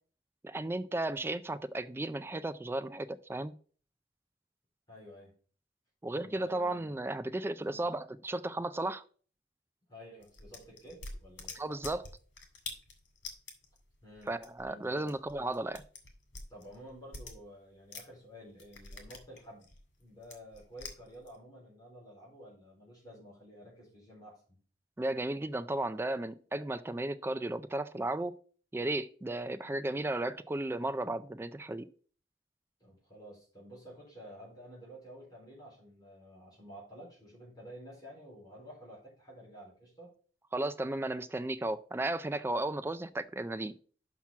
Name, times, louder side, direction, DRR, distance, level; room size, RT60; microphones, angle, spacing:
voice 1, 0.4-3.5 6.0-9.0 11.6-12.1 14.3-15.8 25.0-28.4 28.7-31.9 40.5-43.7, right 2 dB, 15° right, 0.3 m, -34 dB
voice 2, 4.9-5.3 6.1-7.0 7.6-7.9 9.9-11.6 14.0-14.3 14.6-15.1 16.5-19.7 20.0-24.6 32.8-40.1, equal, 20° left, 3.8 m, -51 dB
sound 1, 10.2-18.2 18.5-21.4, left 3 dB, 90° left, 2.3 m, -47 dB
5.9 x 5.9 x 5.6 m
head